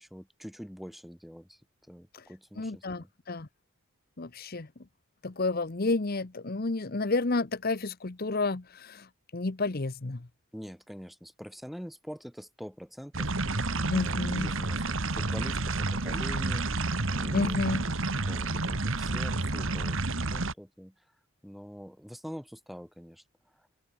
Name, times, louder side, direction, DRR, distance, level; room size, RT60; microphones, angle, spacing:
voice 1, 0.0-1.6 1.9-3.1 10.5-13.7 13.9-20.9 21.4-23.2, equal, ahead, 2.3 m, -45 dB
voice 2, 2.6-3.5 4.2-4.7 5.2-9.1 9.3-10.3 13.9-14.5 17.3-17.8, left 3 dB, 45° left, 0.9 m, -30 dB
sound 1, 13.1-20.5, right 3 dB, 65° right, 1.8 m, -30 dB
open air
head